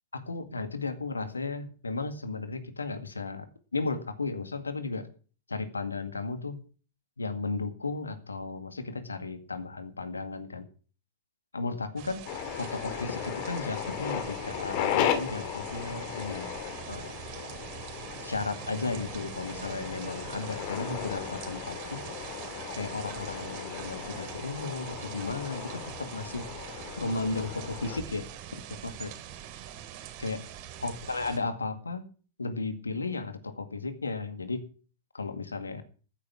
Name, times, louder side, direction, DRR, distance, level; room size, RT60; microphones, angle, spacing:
voice 1, 0.1-3.5 3.7-5.1 5.5-6.6 7.2-10.7 11.5-12.2 12.5-16.5 16.9-17.1 18.2-22.0 22.7-26.5 27.0-29.1 30.2-30.4 30.8-32.0 32.4-34.6 35.1-35.8, left 3 dB, 80° left, 10 dB, 2.0 m, -34 dB
sound 1, 12.0-31.4, right 11 dB, 45° right, 2.8 m, -43 dB
sound 2, 12.3-28.0, left 10 dB, 45° left, 2.5 m, -36 dB
14.5 x 9.7 x 6.2 m, 0.39 s
figure-of-eight pair, 100°, 0 cm